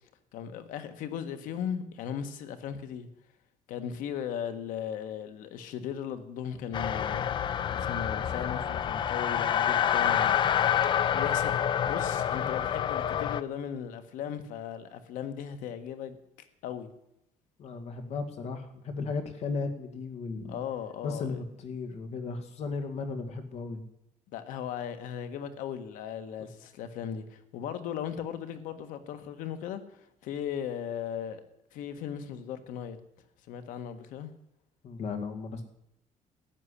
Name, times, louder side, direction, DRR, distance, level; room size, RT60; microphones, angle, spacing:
voice 1, 0.3-3.1 3.7-7.3 7.7-10.5 11.1-11.5 11.8-16.2 16.6-16.9 20.5-21.4 24.3-31.4 31.7-33.0 33.5-34.3, left 8 dB, 90° left, 1.5 m, -37 dB
sound 1, 6.7-13.4, left 9 dB, 35° left, 0.5 m, -27 dB
voice 2, 17.6-20.6 21.0-23.8 34.8-35.6, left 4 dB, 55° left, 2.0 m, -35 dB
13.5 x 7.2 x 10.0 m
cardioid pair, 150°, 13 cm